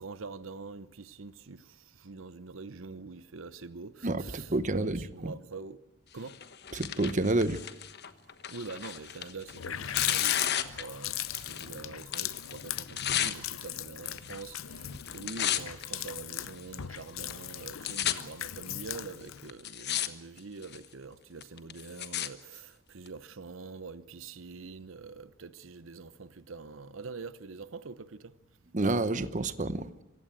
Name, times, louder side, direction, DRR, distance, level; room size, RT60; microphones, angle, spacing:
voice 1, 0.0-5.8 6.1-6.4 8.5-28.4 29.1-29.2, right 4 dB, 75° right, 0.9 m, -45 dB
voice 2, 4.0-5.3 6.7-7.7 28.7-29.9, right 2 dB, 40° right, 0.9 m, -29 dB
Tearing, 6.3-11.7 12.0-13.4 14.1-14.6 14.9-15.8 16.5-16.6 17.3-17.4 17.6-18.1 18.9-19.0 19.5-20.1 20.4-20.9 21.4-22.3 23.1-23.2, left 10 dB, 55° left, 1.2 m, -33 dB
Water tap faucet, 9.0-9.1 9.4-19.5, left 12 dB, 90° left, 0.8 m, -38 dB
25.5 x 16.0 x 9.0 m
head